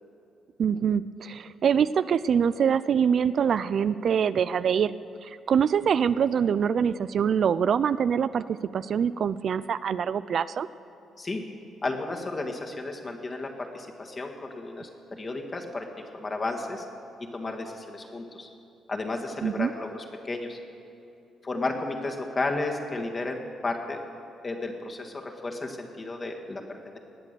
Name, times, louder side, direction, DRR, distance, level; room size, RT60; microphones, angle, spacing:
voice 1, 0.6-4.9 5.2-10.7 19.4-19.7, right 7 dB, 55° right, 15 dB, 0.3 m, -24 dB
voice 2, 11.8-16.9 17.3-18.5 18.9-20.6 21.4-24.0 24.4-27.0, left 2 dB, 30° left, 2 dB, 1.8 m, -33 dB
19.5 x 8.3 x 6.8 m, 2.7 s
cardioid pair, 90°, 0 cm